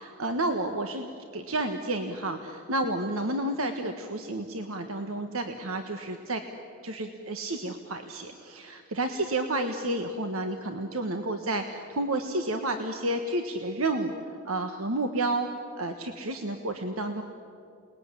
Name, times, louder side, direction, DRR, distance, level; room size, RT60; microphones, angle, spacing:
voice 1, 0.2-1.1 1.3-6.4 6.8-14.1 14.4-15.5 15.8-17.2, right 2 dB, 70° right, 6 dB, 1.4 m, -30 dB
28.5 x 20.0 x 9.9 m, 2.5 s
head